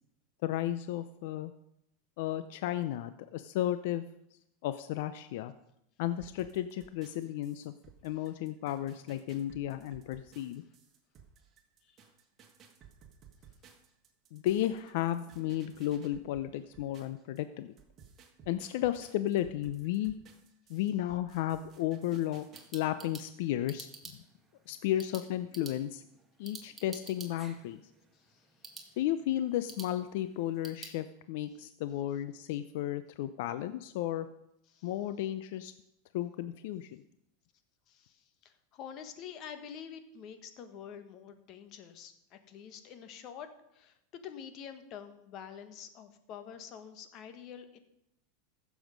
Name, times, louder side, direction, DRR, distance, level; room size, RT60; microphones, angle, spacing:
voice 1, 0.4-1.5 2.2-4.0 4.6-5.5 6.0-7.7 8.0-10.6 14.3-17.7 18.5-20.1 20.7-22.5 22.7-23.9 24.7-26.0 26.4-27.8 29.0-34.3 34.8-35.7 36.1-37.0, left 12 dB, 65° left, 12 dB, 0.5 m, -33 dB
sound 1, 6.2-17.4 17.8-22.7, right 7 dB, 30° right, 1.9 m, -58 dB
sound 2, 22.2-31.0, right 3 dB, 10° right, 1.9 m, -51 dB
voice 2, 28.1-28.5 28.7-29.0 34.7-34.9 37.9-47.8, left 8 dB, 45° left, 9 dB, 1.4 m, -47 dB
15.0 x 7.2 x 5.2 m, 0.79 s
supercardioid pair, 125°, 0 cm